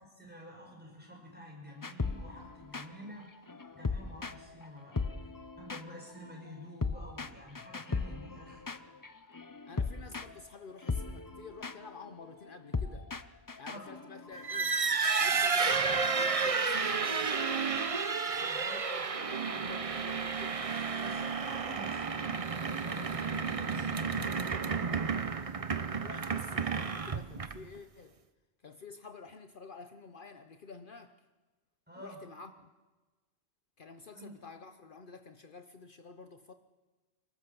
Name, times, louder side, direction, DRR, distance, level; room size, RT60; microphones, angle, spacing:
voice 1, 0.0-3.3 3.7-5.0 5.6-8.6 13.7-13.8 18.4-18.8 21.0-25.0 31.9-32.2 34.1-34.3, equal, 10° right, 0 dB, 5.6 m, -49 dB
sound 1, 1.8-4.7 4.9-16.6, left 4 dB, 25° left, 0.6 m, -39 dB
voice 2, 9.7-13.1 13.6-14.7 15.2-17.8 18.3-20.6 26.0-28.1 28.6-31.2 32.0-32.7 33.8-36.5, left 4 dB, 55° left, 8 dB, 1.1 m, -50 dB
sound 2, 14.3-27.8, right 5 dB, 35° right, 0.8 m, -31 dB
24.5 x 19.5 x 7.0 m, 1.3 s
omnidirectional pair, 1.0 m